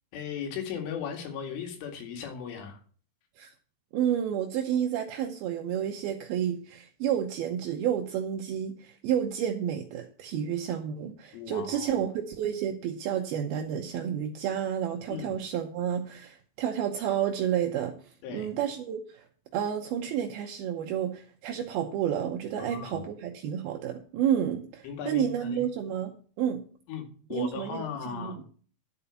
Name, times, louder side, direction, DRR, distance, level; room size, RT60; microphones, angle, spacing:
voice 1, 0.1-2.8 11.3-12.0 15.1-15.4 18.2-18.5 22.6-23.1 24.8-25.6 26.9-28.4, left 7 dB, 85° left, 4 dB, 4.7 m, -37 dB
voice 2, 3.9-17.9 18.3-19.3 19.5-26.1 26.4-26.6 27.3-27.8 28.1-28.4, right 9 dB, 80° right, 3 dB, 2.2 m, -30 dB
11.5 x 5.5 x 7.0 m, 0.43 s
omnidirectional pair, 5.5 m